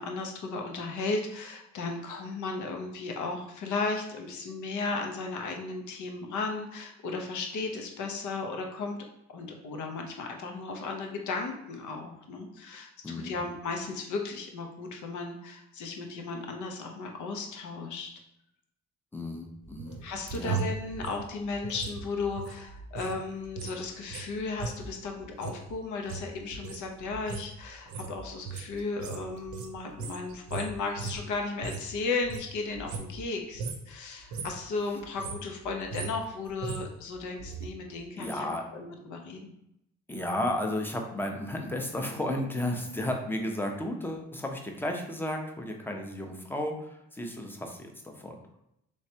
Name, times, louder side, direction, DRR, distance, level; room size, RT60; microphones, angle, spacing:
voice 1, 0.0-9.0 9.3-18.1 20.0-39.5, left 3 dB, 75° left, 3 dB, 0.7 m, -35 dB
voice 2, 13.0-13.4 19.1-20.0 20.3-20.6 38.2-38.6 40.1-48.4, left 1 dB, 5° left, 2 dB, 0.6 m, -33 dB
sound 1, 19.6-23.2 23.4-31.9 32.2-33.3 33.5-33.9 34.2-34.7 35.0-37.7 38.0-38.1, right 5 dB, 75° right, 0.6 m, -38 dB
3.3 x 3.1 x 2.8 m, 0.81 s
cardioid pair, 90°, 30 cm